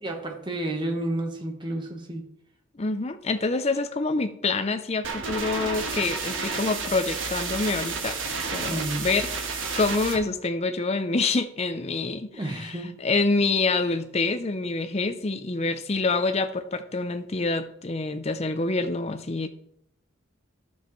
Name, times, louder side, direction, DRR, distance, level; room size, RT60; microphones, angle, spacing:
voice 1, 0.0-2.3 8.6-9.1 12.3-12.9, right 1 dB, 20° right, 3 dB, 1.2 m, -31 dB
voice 2, 2.7-8.2 8.5-9.3 9.8-19.5, left 3 dB, 30° left, 9 dB, 0.6 m, -26 dB
sound 1, 5.0-10.2, right 4 dB, 65° right, 1.4 m, -31 dB
11.5 x 7.1 x 3.2 m, 0.75 s
head